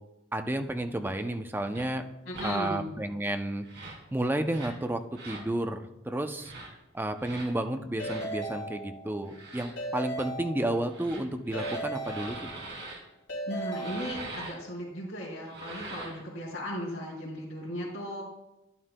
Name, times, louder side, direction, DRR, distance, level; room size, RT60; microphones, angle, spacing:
voice 1, 0.3-2.0 2.4-3.6 4.1-6.5 6.9-12.5, right 1 dB, 10° right, 6 dB, 0.5 m, -31 dB
sound 1, 1.7-1.9 2.3-2.5 3.6-4.0 4.5-4.8 5.1-5.5 6.4-6.7 7.2-7.5 8.0-8.3 9.2-9.7 10.8-13.0 13.7-14.5 15.4-16.2, right 2 dB, 60° right, 2.3 m, -42 dB
voice 2, 2.2-2.9 13.5-18.2, equal, 60° left, -9 dB, 2.9 m, -36 dB
Keyboard (musical) / Ringtone, 8.0-9.3 9.8-11.1 11.5-12.9 13.3-14.6, right 1 dB, 90° left, 2.8 m, -37 dB
11.5 x 11.0 x 2.2 m, 0.92 s
head